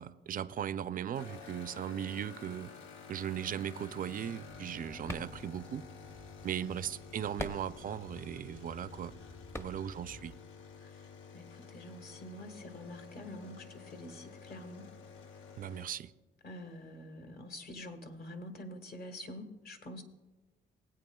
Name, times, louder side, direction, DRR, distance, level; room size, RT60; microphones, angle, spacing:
voice 1, 0.0-2.7 3.1-5.8 6.4-9.1 9.6-10.3 15.6-16.1, right 9 dB, 45° right, 0.4 m, -38 dB
sound 1, 1.1-15.9, left 5 dB, 85° left, 0.9 m, -51 dB
sound 2, 4.4-10.4, left 1 dB, 15° left, 0.7 m, -47 dB
voice 2, 11.3-14.9 16.4-20.0, left 1 dB, 50° left, 1.5 m, -46 dB
19.5 x 8.6 x 2.3 m
cardioid pair, 90°, 20 cm